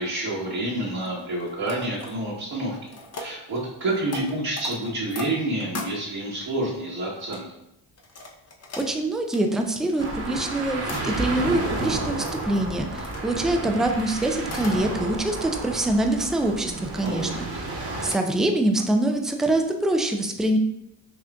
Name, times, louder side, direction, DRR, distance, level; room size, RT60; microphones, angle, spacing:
voice 1, 0.0-2.8 3.2-7.4 17.0-17.5, right 1 dB, 50° right, -8 dB, 1.2 m, -28 dB
sound 1, 1.0-2.4 2.7-5.9 6.6-7.4 8.0-11.4 11.8-13.2 14.0-14.8 15.2-15.8 16.3-16.7 17.0-17.7 18.1-18.2 18.8-19.3 19.6-19.7, left 2 dB, 30° left, 0.7 m, -40 dB
voice 2, 8.8-20.6, right 1 dB, ahead, 4 dB, 0.3 m, -25 dB
sound 2, 10.0-18.1, right 2 dB, 30° right, 1.0 m, -32 dB
6.3 x 2.4 x 2.3 m, 0.83 s
supercardioid pair, 65°, 49 cm